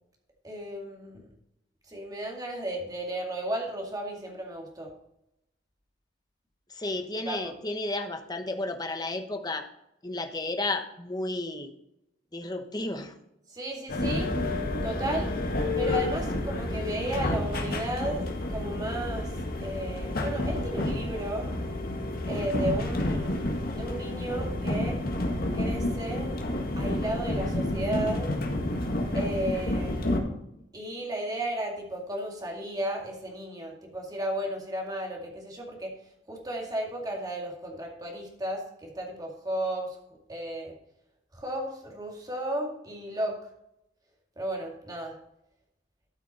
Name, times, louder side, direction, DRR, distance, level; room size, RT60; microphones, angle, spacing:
voice 1, 0.4-1.3 1.9-4.9 7.3-7.5 13.5-14.3 14.8-15.3 15.8-19.3 19.6-21.5 22.3-25.0 25.5-26.3 26.8-28.3 29.1-30.3 30.7-35.9 36.3-40.0 40.3-40.7 41.3-43.4 44.4-45.1, right 1 dB, 20° right, 0 dB, 2.2 m, -34 dB
voice 2, 6.7-9.6 10.0-11.7 12.3-13.1, left 2 dB, 20° left, 6 dB, 1.0 m, -32 dB
sound 1, 13.9-30.2, left 1 dB, 55° left, 1.7 m, -30 dB
13.0 x 6.1 x 4.2 m, 0.82 s
head